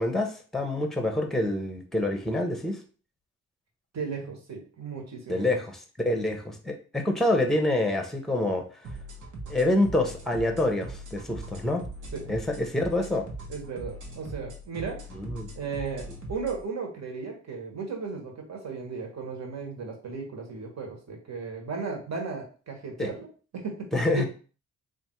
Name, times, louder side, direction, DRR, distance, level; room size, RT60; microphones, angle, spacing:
voice 1, 0.0-2.8 5.3-8.6 9.5-11.8 12.3-13.3 15.1-15.5 23.0-23.1 23.9-24.3, left 1 dB, ahead, 5 dB, 0.7 m, -27 dB
voice 2, 3.9-5.5 6.1-6.2 12.1-12.2 13.5-15.0 15.5-23.3 23.5-24.3, right 5 dB, 60° right, 1 dB, 1.3 m, -35 dB
sound 1, 8.8-16.6, right 1 dB, 75° right, 1.1 m, -40 dB
3.4 x 2.5 x 4.4 m, 0.38 s
cardioid pair, 95°, 31 cm